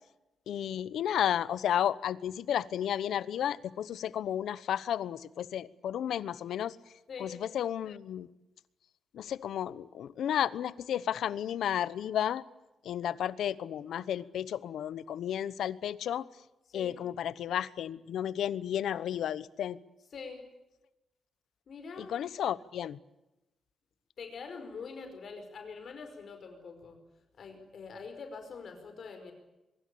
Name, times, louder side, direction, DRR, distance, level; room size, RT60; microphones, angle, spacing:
voice 1, 0.5-6.8 7.2-8.3 9.1-12.4 12.8-16.3 16.7-19.8 22.0-23.0, left 10 dB, 85° left, 17 dB, 1.0 m, -32 dB
voice 2, 7.1-7.4 16.7-17.0 20.1-20.4 21.7-22.1 24.2-27.0 27.4-29.3, left 5 dB, 50° left, 5 dB, 5.1 m, -44 dB
23.5 x 23.0 x 8.7 m, 0.97 s
wide cardioid pair, 165°, 0 cm